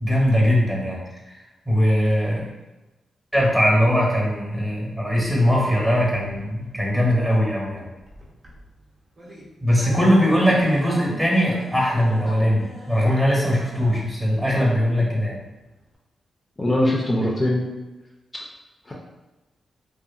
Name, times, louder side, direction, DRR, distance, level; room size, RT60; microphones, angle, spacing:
voice 1, 0.0-1.0 1.3-1.4 1.7-2.5 3.3-7.8 9.6-15.4, equal, 10° right, -3 dB, 0.9 m, -20 dB
sound 1, 5.9-16.0, equal, 50° right, 0.7 m, -40 dB
voice 2, 16.6-17.6 18.9-19.0, left 1 dB, 30° left, -3 dB, 0.5 m, -21 dB
2.7 x 2.3 x 2.4 m, 1.1 s
cardioid pair, 70°, 0 cm